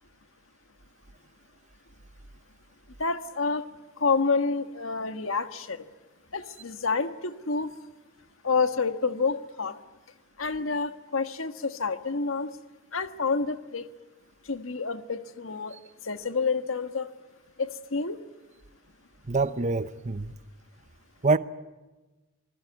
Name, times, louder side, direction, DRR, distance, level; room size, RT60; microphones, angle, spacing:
voice 1, 3.0-3.7 4.0-5.9 6.3-7.7 8.4-9.8 10.4-12.5 12.9-13.9 14.5-15.8 16.0-17.1 17.6-18.2, left 4 dB, 80° left, 1.4 m, -28 dB
voice 2, 19.3-20.3 21.2-21.4, right 3 dB, 35° right, 0.8 m, -25 dB
26.5 x 20.0 x 9.5 m
head